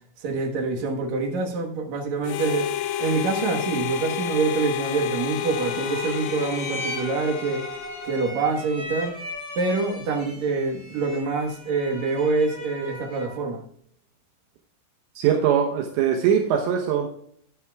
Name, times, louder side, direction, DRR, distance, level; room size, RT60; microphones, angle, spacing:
voice 1, 0.2-2.7 3.0-7.7 8.0-9.2 9.6-13.6, right 4 dB, 65° right, 1.8 m, -26 dB
Harmonica, 2.2-8.6, left 9 dB, 85° left, 2.8 m, -30 dB
sound 1, 5.3-13.4, equal, 30° right, 4.3 m, -38 dB
voice 2, 15.2-17.1, right 8 dB, 80° right, 3.1 m, -21 dB
13.5 x 9.4 x 2.3 m
omnidirectional pair, 5.1 m